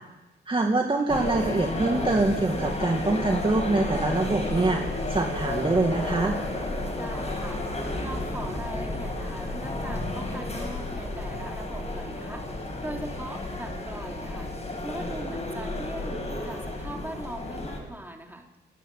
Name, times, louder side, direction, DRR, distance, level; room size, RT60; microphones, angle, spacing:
voice 1, 0.5-4.8 5.1-6.4, right 2 dB, 25° right, 2 dB, 2.4 m, -24 dB
sound 1, 1.1-17.8, left 2 dB, 35° left, 7.7 m, -32 dB
voice 2, 7.0-12.5 12.8-14.5 14.8-18.5, right 1 dB, 10° right, 2 dB, 3.8 m, -40 dB
28.5 x 12.0 x 8.5 m, 1.1 s
cardioid pair, 65°, 19 cm